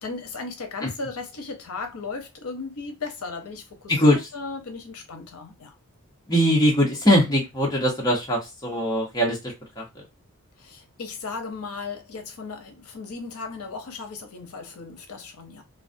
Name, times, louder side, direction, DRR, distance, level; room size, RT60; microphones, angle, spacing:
voice 1, 0.0-5.7 10.6-15.6, left 4 dB, 80° left, 0.6 m, -36 dB
voice 2, 6.3-9.8, equal, 15° left, 0.7 m, -21 dB
2.4 x 2.1 x 2.5 m
head